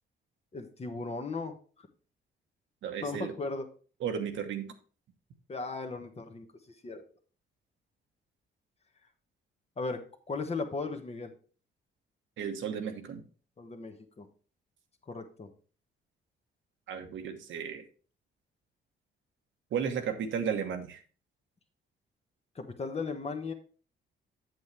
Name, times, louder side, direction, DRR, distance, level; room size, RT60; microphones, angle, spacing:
voice 1, 0.5-1.9 3.0-3.6 5.5-6.5 6.8-7.0 9.8-10.0 10.3-11.3 13.6-14.3 15.1-15.5 22.5-23.5, left 3 dB, 30° left, 6 dB, 1.3 m, -36 dB
voice 2, 2.8-3.3 4.0-4.7 12.4-13.2 16.9-17.8 19.7-21.0, right 7 dB, 75° right, 6 dB, 1.2 m, -34 dB
7.7 x 7.3 x 3.3 m, 0.39 s
cardioid pair, 90°, 20 cm